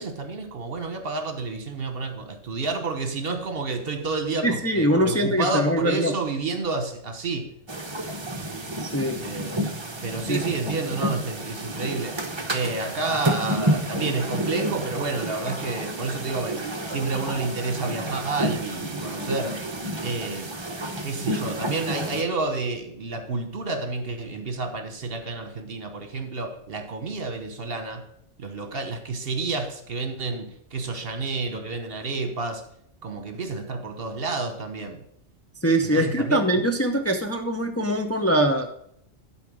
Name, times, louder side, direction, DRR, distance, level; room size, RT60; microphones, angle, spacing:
voice 1, 0.0-7.5 9.2-9.7 10.0-12.2 12.5-16.6 16.9-19.6 20.0-20.5 21.0-28.1 28.4-32.6 33.0-35.0 35.8-36.7, right 3 dB, 55° right, 1.3 m, -30 dB
voice 2, 4.4-6.1 8.8-9.2 10.3-10.4 35.6-38.7, right 1 dB, 15° left, 0.6 m, -23 dB
sound 1, 7.7-22.2, right 1 dB, 25° right, 0.9 m, -30 dB
11.5 x 4.4 x 6.2 m
omnidirectional pair, 1.2 m